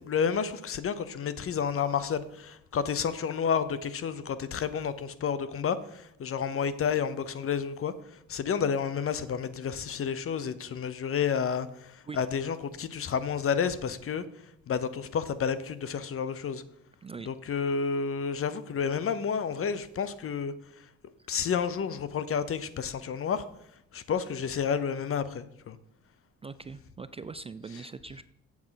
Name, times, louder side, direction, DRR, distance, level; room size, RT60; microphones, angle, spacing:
voice 1, 0.0-16.6 17.3-20.9 21.3-23.5 23.9-25.8, left 7 dB, 45° left, 0.8 m, -30 dB
voice 2, 26.4-28.2, right 4 dB, 20° right, 0.3 m, -42 dB
7.6 x 7.3 x 5.7 m
cardioid pair, 90°, 30 cm